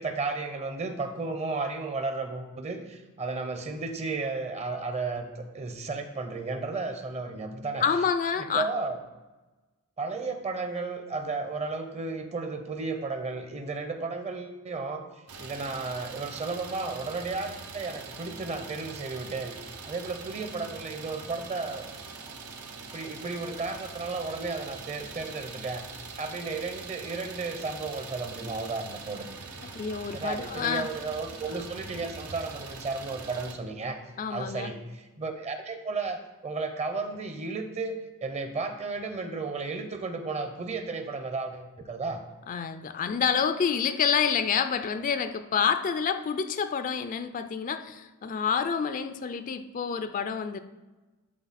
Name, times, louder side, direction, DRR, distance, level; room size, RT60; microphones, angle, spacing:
voice 1, 0.0-7.8 8.4-9.0 10.0-15.0 15.4-19.6 19.9-21.9 22.3-22.4 22.9-25.9 26.2-29.3 30.1-34.0 34.3-42.2, right 3 dB, 30° right, 7 dB, 0.7 m, -33 dB
voice 2, 7.8-8.7 29.6-30.9 34.2-34.7 42.5-50.6, left 6 dB, 35° left, 10 dB, 0.4 m, -28 dB
Idling, 15.3-33.5, right 4 dB, 80° right, 0.8 m, -43 dB
11.0 x 4.1 x 4.2 m, 1.2 s
head